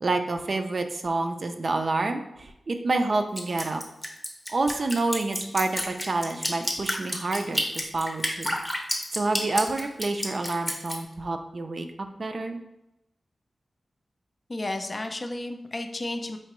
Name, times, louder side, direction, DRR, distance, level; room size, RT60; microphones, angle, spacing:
voice 1, 0.0-3.8 4.5-8.6 9.1-11.9 12.2-12.6, right 2 dB, 55° right, 6 dB, 0.4 m, -28 dB
Drip, 3.4-11.0, equal, 10° left, 0.7 m, -29 dB
voice 2, 14.5-16.4, left 2 dB, 40° left, 5 dB, 0.4 m, -32 dB
4.4 x 2.9 x 3.0 m, 0.85 s
wide cardioid pair, 80°, 0 cm